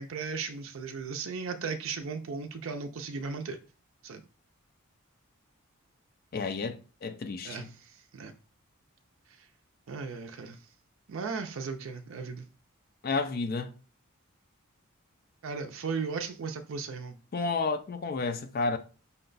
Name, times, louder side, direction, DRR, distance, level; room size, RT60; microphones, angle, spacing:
voice 1, 0.0-3.6 4.0-4.2 7.4-8.3 9.3-9.5 9.9-10.6 11.1-12.5 15.4-17.2, right 5 dB, 65° right, 0.4 m, -36 dB
voice 2, 6.3-7.7 13.0-13.7 17.3-18.8, left 4 dB, 40° left, 0.3 m, -31 dB
5.5 x 2.2 x 3.9 m
head